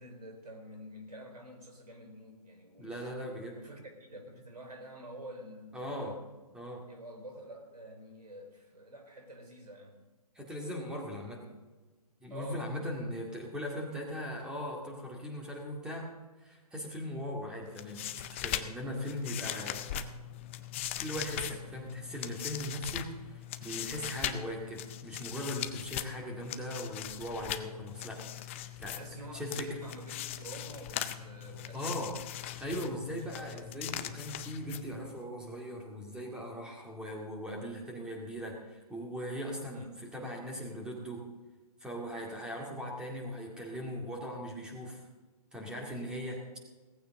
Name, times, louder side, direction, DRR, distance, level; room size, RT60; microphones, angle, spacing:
voice 1, 0.0-3.1 3.6-6.2 6.9-10.0 12.3-12.7 18.8-19.1 28.9-31.9 39.7-40.0 42.7-42.9, right 1 dB, 80° right, 4 dB, 4.0 m, -48 dB
voice 2, 2.8-3.6 5.7-6.2 6.5-6.8 10.3-11.4 12.2-16.1 16.4-19.8 21.0-28.2 28.8-29.0 29.3-29.8 31.7-32.1 32.6-41.2 41.8-45.0 45.5-46.4, equal, 5° right, -1 dB, 2.1 m, -39 dB
sound 1, 17.6-35.2, left 12 dB, 20° left, 0.5 m, -40 dB
17.0 x 15.0 x 3.8 m, 1.2 s
figure-of-eight pair, 140°, 20 cm